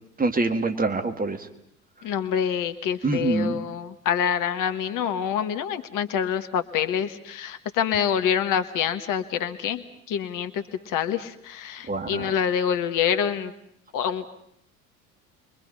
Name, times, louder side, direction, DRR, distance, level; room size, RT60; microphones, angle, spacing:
voice 1, 0.2-1.4 3.0-3.6 11.9-12.4, right 3 dB, 20° right, 6 dB, 2.1 m, -25 dB
voice 2, 2.0-13.5 13.9-14.3, left 8 dB, 50° left, 9 dB, 1.6 m, -26 dB
30.0 x 23.5 x 5.7 m, 0.71 s
figure-of-eight pair, 65°, 42 cm